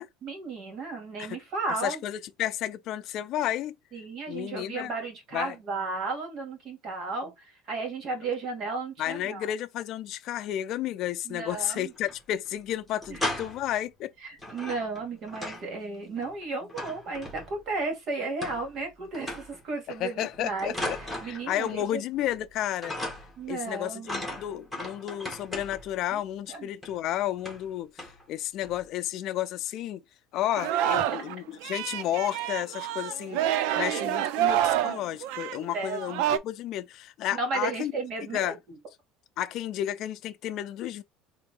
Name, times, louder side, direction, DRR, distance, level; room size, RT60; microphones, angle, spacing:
voice 1, 0.2-2.0 3.9-9.5 11.2-11.9 13.1-13.2 14.2-22.0 23.4-24.1 26.1-26.2 26.5-26.7 35.7-36.0 37.3-38.5, right 3 dB, 45° right, 2.1 m, -34 dB
voice 2, 1.8-3.7 4.3-4.9 5.3-5.5 9.0-14.1 20.0-21.0 21.2-23.0 23.5-30.0 30.3-33.4 33.7-37.9 38.3-38.6 39.4-41.0, left 12 dB, 50° left, 0.5 m, -32 dB
sound 1, 11.7-12.2 12.5-12.6 12.9-13.8 14.4-15.7 16.0-17.7 18.4-18.9 19.1-19.6 20.2-21.9 22.2-22.5 22.8-23.5 24.0-26.0 26.8-27.0 27.4-27.7 28.0-28.2 28.6-28.9, left 1 dB, ahead, 1.7 m, -37 dB
Singing, 30.6-31.3 31.6-36.4, right 12 dB, 75° right, 0.4 m, -28 dB
3.8 x 2.7 x 3.7 m
cardioid pair, 145°, 0 cm